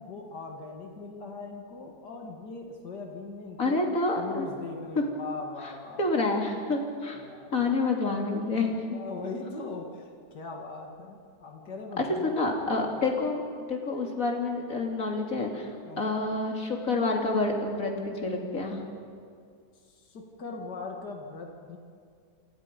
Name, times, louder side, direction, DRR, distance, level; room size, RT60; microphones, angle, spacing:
voice 1, 0.0-3.8 4.2-6.1 7.2-7.7 8.6-12.3 12.8-13.1 15.9-16.2 19.8-21.8, left 3 dB, 70° left, 1 dB, 2.7 m, -40 dB
voice 2, 3.6-4.5 6.0-7.3 7.5-9.0 12.0-13.4 13.7-15.7 16.0-18.8, left 3 dB, 50° left, 1 dB, 3.3 m, -28 dB
28.0 x 28.0 x 5.4 m, 2.3 s
omnidirectional pair, 1.9 m